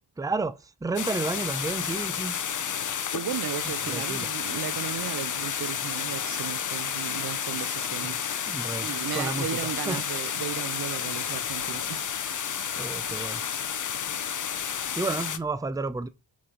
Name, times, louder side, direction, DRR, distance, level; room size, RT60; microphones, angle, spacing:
voice 1, 0.2-2.4 3.8-4.3 8.0-8.2 8.5-10.0 12.7-13.4 14.4-16.1, right 3 dB, 10° right, 0.5 m, -32 dB
sound 1, 1.0-15.4, left 8 dB, 45° left, 0.6 m, -31 dB
voice 2, 3.1-12.1, right 11 dB, 60° right, 0.5 m, -36 dB
sound 2, 3.4-14.9, right 2 dB, 75° right, 1.5 m, -53 dB
sound 3, 4.4-9.6, left 2 dB, 20° left, 1.7 m, -48 dB
7.0 x 3.8 x 5.0 m
cardioid pair, 75°, 43 cm